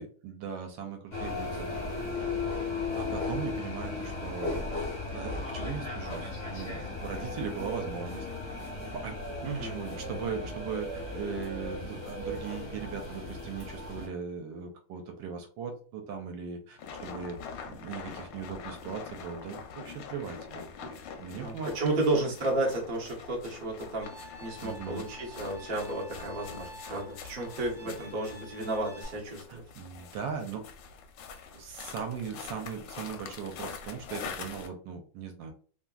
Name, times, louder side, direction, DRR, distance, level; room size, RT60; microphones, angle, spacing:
voice 1, 0.0-1.8 3.0-4.5 5.1-8.3 8.9-9.2 9.5-17.4 17.7-22.0 24.6-25.1 27.8-27.9 29.5-30.6 31.5-35.5, right 6 dB, 75° right, 4 dB, 1.2 m, -39 dB
sound 1, 1.1-14.1, left 3 dB, 35° left, 0.8 m, -36 dB
voice 2, 9.4-9.8 21.3-24.1 24.4-29.6, right 2 dB, 60° right, -2 dB, 0.5 m, -32 dB
sound 2, 16.8-34.7, left 6 dB, 75° left, 1.0 m, -44 dB
Bowed string instrument, 24.0-29.0, equal, 40° right, 1.0 m, -49 dB
3.0 x 2.5 x 2.3 m, 0.41 s
omnidirectional pair, 2.2 m